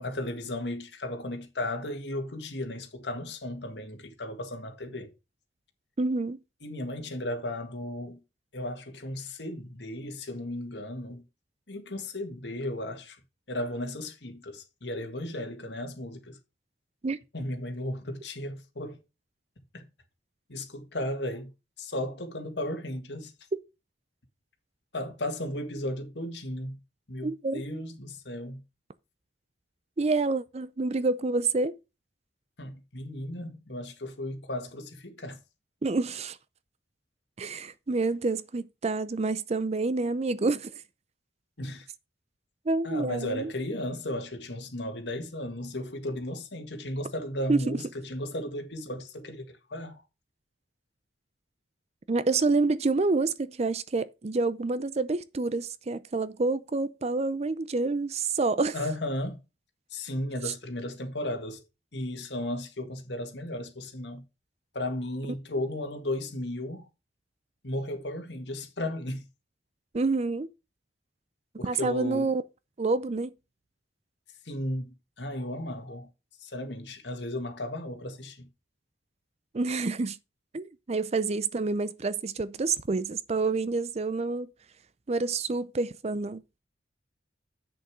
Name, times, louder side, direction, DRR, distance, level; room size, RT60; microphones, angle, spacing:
voice 1, 0.0-5.1 6.6-8.2 8.5-11.2 11.7-13.2 13.5-16.4 17.3-19.0 19.7-19.9 20.5-21.5 21.8-23.3 24.9-26.8 27.1-28.6 32.6-35.4 41.6-41.9 42.8-50.0 58.7-59.4 59.9-61.6 61.9-64.2 64.7-66.9 67.6-69.3 71.6-72.3 74.4-76.1 76.4-78.5, left 1 dB, 65° left, 1.9 m, -35 dB
voice 2, 6.0-6.4 17.0-17.2 27.2-27.6 30.0-31.7 35.8-36.4 37.4-40.7 42.7-43.5 47.5-47.8 52.1-58.7 69.9-70.5 71.6-72.4 72.8-73.3 79.5-80.2 80.5-84.5 85.1-86.4, right 3 dB, 35° right, 0.5 m, -28 dB
7.9 x 6.6 x 4.8 m
head